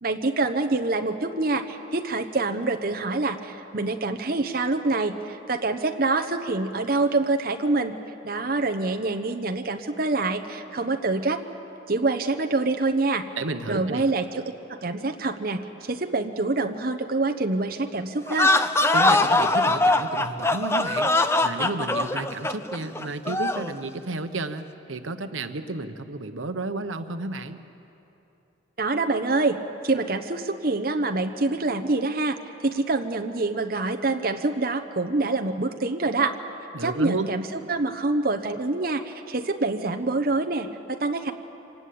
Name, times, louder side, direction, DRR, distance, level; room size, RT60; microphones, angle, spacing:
voice 1, 0.0-8.0 8.2-11.4 11.9-13.2 13.7-18.5 28.8-29.6 29.8-36.3 36.8-41.3, right 3 dB, 50° right, 5 dB, 1.0 m, -26 dB
voice 2, 13.4-14.0 18.9-27.6 36.7-37.3, right 2 dB, 90° right, 9 dB, 1.0 m, -32 dB
sound 1, 18.3-23.7, left 2 dB, 15° left, 0.6 m, -22 dB
25.5 x 19.0 x 8.6 m, 2.9 s
head